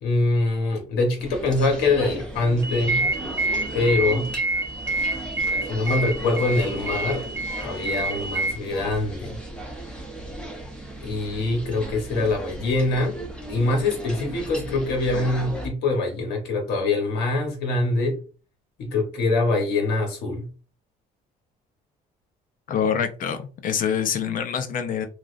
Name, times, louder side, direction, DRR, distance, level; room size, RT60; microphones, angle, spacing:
voice 1, 0.0-3.0 3.7-4.3 5.7-7.2 7.6-9.4 11.0-13.2 13.5-18.2 18.8-20.5, left 2 dB, 80° left, 1.0 m, -24 dB
sound 1, 1.2-15.7, right 1 dB, 5° left, 0.8 m, -36 dB
sound 2, 2.6-8.5, right 2 dB, 15° right, 0.4 m, -27 dB
voice 2, 22.7-25.1, left 7 dB, 55° left, 0.6 m, -25 dB
3.0 x 2.4 x 2.5 m
cardioid pair, 110°, 17 cm